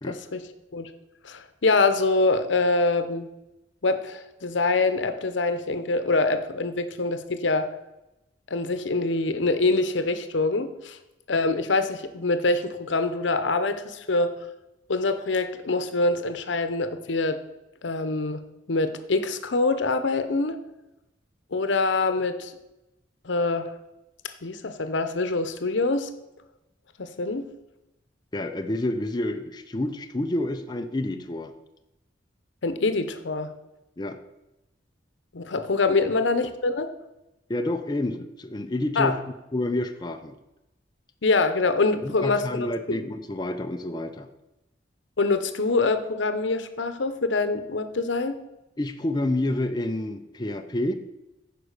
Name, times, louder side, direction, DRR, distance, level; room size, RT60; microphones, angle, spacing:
voice 1, 0.1-0.4 0.7-0.9 1.2-3.3 3.8-7.7 8.5-11.0 11.3-14.4 14.9-17.4 17.8-18.4 18.7-20.6 21.5-22.5 23.2-23.7 24.4-26.1 27.0-27.5 32.6-33.5 35.3-36.9 39.0-39.1 41.2-42.4 42.9-43.0 45.2-48.4, left 3 dB, 80° left, 10 dB, 0.8 m, -25 dB
voice 2, 28.3-31.5 34.0-34.2 35.9-36.0 37.5-39.2 39.5-40.3 42.0-44.3 48.8-50.9, left 1 dB, 25° left, 5 dB, 0.5 m, -29 dB
9.8 x 4.9 x 6.5 m, 0.96 s
head